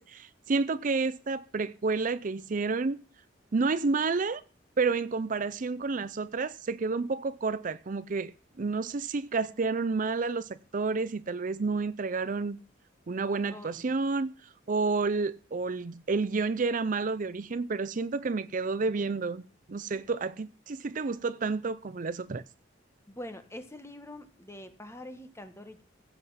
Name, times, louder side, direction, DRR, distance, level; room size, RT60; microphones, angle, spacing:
voice 1, 0.0-3.0 3.5-4.4 4.8-8.3 8.6-12.6 13.1-14.3 14.7-19.4 19.7-22.4, right 4 dB, 45° right, 0.5 m, -30 dB
voice 2, 13.5-13.9 23.1-25.8, left 1 dB, 15° left, 1.5 m, -44 dB
15.5 x 7.9 x 5.7 m
head